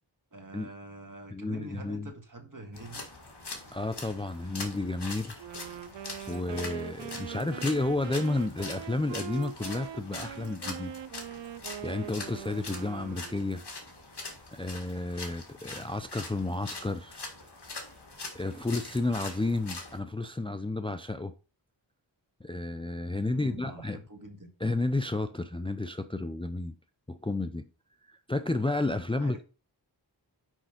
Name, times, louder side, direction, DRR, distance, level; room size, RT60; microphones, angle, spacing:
voice 1, 0.3-3.1 18.5-18.6 23.3-24.5 29.2-29.4, right 2 dB, 45° right, 2.1 m, -45 dB
voice 2, 1.3-2.1 3.7-5.5 6.3-10.9 11.8-13.6 14.5-17.2 18.3-21.3 22.4-24.0 24.6-26.7 27.1-27.6 28.1-29.4, left 2 dB, 10° left, 0.6 m, -31 dB
sound 1, 2.7-20.0, left 3 dB, 60° left, 1.9 m, -43 dB
Wind instrument woodwind instrument, 5.4-13.7, right 10 dB, 75° right, 0.5 m, -42 dB
6.4 x 5.4 x 5.1 m
cardioid pair, 45°, 44 cm